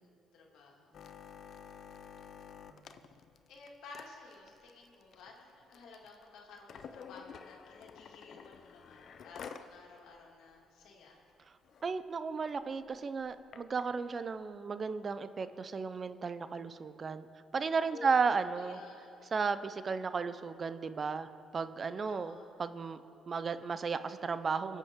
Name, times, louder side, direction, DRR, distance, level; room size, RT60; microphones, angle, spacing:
voice 1, 0.3-1.0 3.5-11.2 17.9-19.2 21.9-22.5, left 3 dB, 80° left, -1 dB, 2.3 m, -53 dB
sound 1, 0.9-9.7 10.1-10.2 10.5-10.8 11.3-11.4 11.6-11.9 12.6-13.8 14.5-14.6, left 7 dB, 60° left, 0.6 m, -51 dB
voice 2, 11.8-17.3 17.5-18.8 19.3-22.3 22.6-23.0 23.3-24.8, right 5 dB, 40° right, 12 dB, 0.5 m, -34 dB
23.5 x 8.2 x 3.7 m, 2.7 s
cardioid pair, 90°, 0 cm